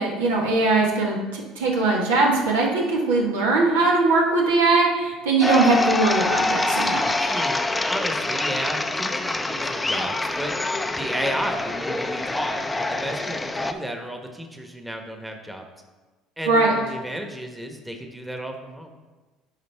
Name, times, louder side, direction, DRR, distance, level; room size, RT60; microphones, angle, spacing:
voice 1, 0.0-7.3 16.5-16.7, right 3 dB, 90° right, -2 dB, 1.3 m, -21 dB
sound 1, 5.4-13.7, left 2 dB, 15° left, 0.5 m, -25 dB
voice 2, 7.2-10.5 10.9-15.6 16.4-18.9, equal, 5° right, 4 dB, 1.1 m, -33 dB
9.0 x 5.0 x 3.4 m, 1.3 s
hypercardioid pair, 75°, 0 cm